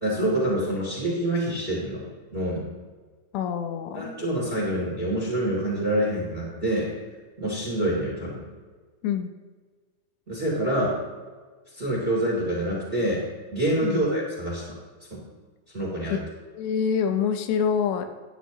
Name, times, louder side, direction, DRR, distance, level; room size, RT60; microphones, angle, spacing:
voice 1, 0.0-2.6 3.9-6.9 7.4-8.4 10.3-11.0 11.7-13.2 13.5-14.6 15.1-15.2 15.7-16.1, right 1 dB, 15° right, -5 dB, 2.5 m, -26 dB
voice 2, 3.3-4.2 9.0-9.3 13.8-14.0 16.1-16.2 16.5-18.1, left 7 dB, 90° left, 7 dB, 3.0 m, -26 dB
12.0 x 10.0 x 3.0 m, 1.4 s
omnidirectional pair, 4.9 m